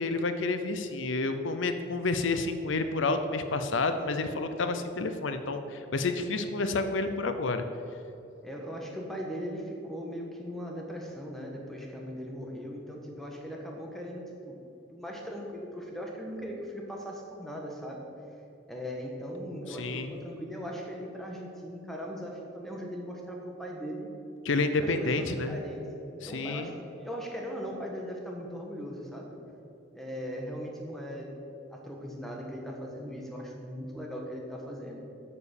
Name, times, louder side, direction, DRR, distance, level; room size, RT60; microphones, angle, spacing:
voice 1, 0.0-7.6 19.8-20.1 24.4-25.6 26.2-26.7, left 3 dB, 75° left, 9 dB, 0.6 m, -29 dB
voice 2, 8.4-14.6 14.9-18.1 18.7-24.1 24.8-25.9 26.3-29.4 29.9-31.3 31.7-35.0, equal, ahead, -1 dB, 1.4 m, -39 dB
8.6 x 6.9 x 7.1 m, 2.9 s
head